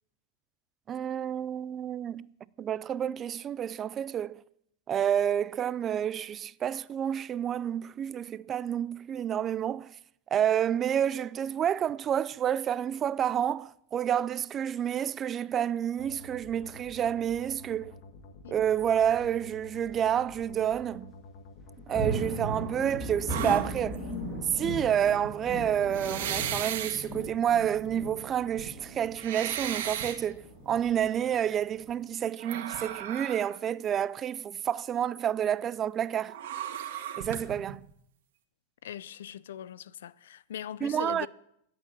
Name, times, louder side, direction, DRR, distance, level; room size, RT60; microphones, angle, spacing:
voice 1, 0.9-2.3 2.6-4.4 4.9-9.9 10.3-17.9 18.5-21.2 21.9-24.1 24.5-36.4 37.2-37.9 40.8-41.3, right 9 dB, 25° right, 0.4 m, -29 dB
sound 1, 16.0-22.8, left 2 dB, 55° left, 1.6 m, -50 dB
sound 2, 19.0-19.3 19.9-20.0 20.4-20.5 21.6-32.0, right 1 dB, 20° left, 6.3 m, -38 dB
sound 3, 23.3-24.1 25.0-25.3 25.9-27.0 27.8-27.9 28.4-30.2 30.7-31.1 32.4-33.6 33.8-33.9 36.3-37.7, right 10 dB, 70° right, 1.8 m, -36 dB
voice 2, 38.8-41.3, left 10 dB, 80° left, 0.5 m, -40 dB
11.0 x 8.4 x 7.7 m
hypercardioid pair, 130°, 0 cm